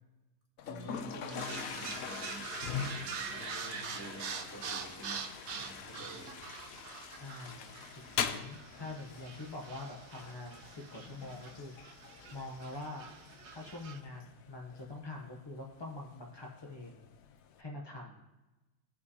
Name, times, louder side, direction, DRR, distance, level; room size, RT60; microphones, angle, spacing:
Toilet flush, 0.6-17.6, left 8 dB, 70° left, 1.0 m, -44 dB
voice 1, 0.6-6.5, right 2 dB, 10° left, -5 dB, 2.2 m, -49 dB
sound 1, 1.3-14.0, right 6 dB, 80° right, 1.3 m, -45 dB
sound 2, 5.8-8.5, equal, 50° left, 3.2 m, -66 dB
voice 2, 7.1-11.9 12.3-13.1 13.5-17.1 17.6-18.2, left 2 dB, 35° left, -1 dB, 0.4 m, -45 dB
16.0 x 5.4 x 2.7 m, 1.1 s
omnidirectional pair, 1.7 m